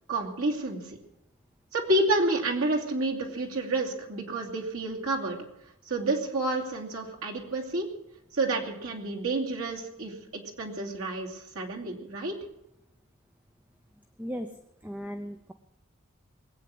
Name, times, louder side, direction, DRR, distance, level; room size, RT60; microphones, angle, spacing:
voice 1, 0.1-1.0 1.7-5.4 5.9-7.9 8.3-12.4, right 2 dB, 80° right, 0 dB, 2.7 m, -29 dB
voice 2, 14.8-15.5, equal, 10° right, 6 dB, 0.7 m, -36 dB
20.5 x 9.0 x 7.8 m, 0.83 s
head